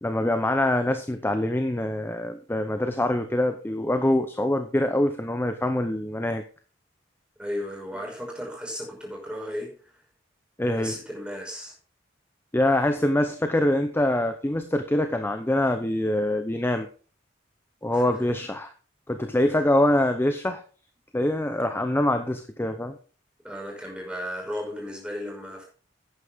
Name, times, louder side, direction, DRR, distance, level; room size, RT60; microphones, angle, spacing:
voice 1, 0.0-6.4 10.6-11.0 12.5-16.9 17.8-18.7 19.1-20.6 21.1-23.0, left 1 dB, 10° left, 7 dB, 0.7 m, -24 dB
voice 2, 7.4-9.9 10.7-11.7 17.9-18.3 23.4-25.6, equal, 5° right, -1 dB, 5.3 m, -35 dB
11.0 x 9.7 x 3.6 m, 0.38 s
head